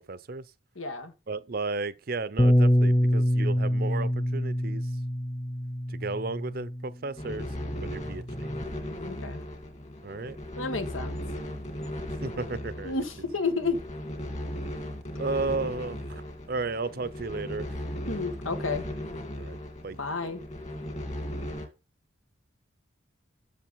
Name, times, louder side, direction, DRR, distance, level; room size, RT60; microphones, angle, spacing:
voice 1, 0.1-0.5 1.3-4.9 5.9-7.5 7.8-8.5 10.0-10.4 12.2-13.0 15.2-17.8 19.4-19.6 19.8-20.0, right 3 dB, 50° right, 0.6 m, -34 dB
voice 2, 0.7-1.1 9.0-9.4 10.6-11.2 12.8-13.8 18.1-18.8 20.0-20.4, left 4 dB, 90° left, 1.8 m, -31 dB
Bass guitar, 2.4-6.9 7.7-8.6, equal, 10° left, 0.4 m, -25 dB
sound 1, 7.2-21.7, left 1 dB, 35° left, 2.2 m, -37 dB
7.6 x 6.9 x 5.6 m
head